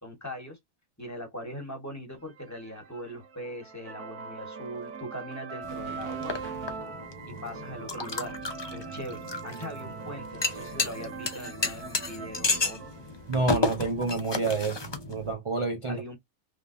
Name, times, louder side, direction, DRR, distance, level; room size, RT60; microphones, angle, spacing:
voice 1, 0.0-0.6 1.0-6.4 7.4-8.4 8.7-12.8 15.9-16.1, equal, 10° left, 1.1 m, -40 dB
sound 1, 2.3-14.1, right 5 dB, 85° right, 1.3 m, -42 dB
sound 2, 5.6-15.3, left 3 dB, 40° left, 0.4 m, -33 dB
voice 2, 13.3-14.8 15.1-16.0, right 3 dB, 50° right, 0.3 m, -28 dB
3.4 x 3.3 x 2.6 m
omnidirectional pair, 1.5 m